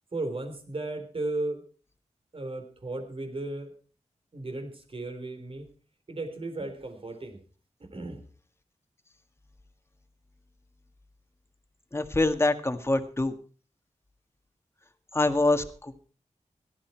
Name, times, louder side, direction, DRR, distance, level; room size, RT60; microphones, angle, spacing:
voice 1, 0.1-1.6 2.3-3.7 4.3-5.7 6.1-7.4 7.9-8.2, right 2 dB, 45° right, 6 dB, 3.9 m, -35 dB
voice 2, 11.9-13.3 15.1-16.0, left 2 dB, 20° left, 7 dB, 1.8 m, -25 dB
18.0 x 13.0 x 4.6 m, 0.41 s
wide cardioid pair, 95°, 12 cm